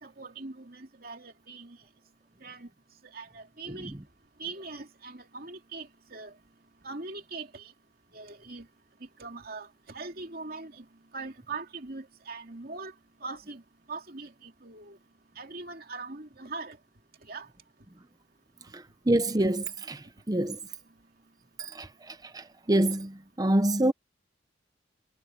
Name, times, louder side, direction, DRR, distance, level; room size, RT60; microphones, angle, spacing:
voice 1, 0.0-1.8 2.4-2.7 3.1-3.9 4.4-6.3 6.8-7.7 8.1-8.7 9.0-10.9 11.1-12.9 13.2-13.6 13.9-15.0 15.4-16.8 17.2-17.5, right 3 dB, 50° right, 2.9 m, -41 dB
voice 2, 18.7-20.6 21.6-23.9, right 1 dB, 20° right, 0.7 m, -27 dB
head